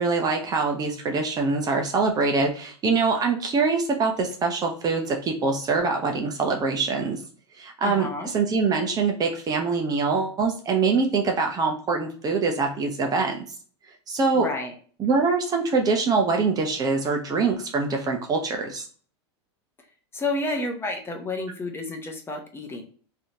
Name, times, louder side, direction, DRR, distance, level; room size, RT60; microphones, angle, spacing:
voice 1, 0.0-7.2 7.6-13.4 14.1-14.5 15.0-18.9, right 4 dB, 25° right, 2 dB, 0.6 m, -24 dB
voice 2, 7.8-8.3 14.3-14.7 20.1-22.8, left 2 dB, 15° left, 2 dB, 0.8 m, -30 dB
3.3 x 2.8 x 2.6 m, 0.43 s
hypercardioid pair, 115°, 14 cm